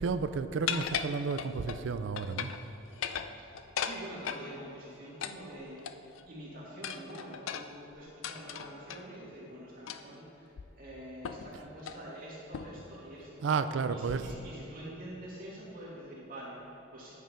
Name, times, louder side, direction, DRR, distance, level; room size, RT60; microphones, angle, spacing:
voice 1, 0.0-2.5 11.5-11.6 13.4-14.3, right 5 dB, 65° right, 11 dB, 0.4 m, -32 dB
sound 1, 0.7-1.8 2.2-2.6 2.9-4.5 5.2-6.2 6.8-9.0 9.9-10.2 10.6-10.7 11.2-11.5 11.8-12.0 12.5-12.9, left 8 dB, 85° left, 0.4 m, -37 dB
voice 2, 3.4-5.9 6.3-13.5 13.9-17.1, right 1 dB, 45° right, -6 dB, 2.4 m, -46 dB
9.3 x 6.7 x 5.1 m, 2.8 s
head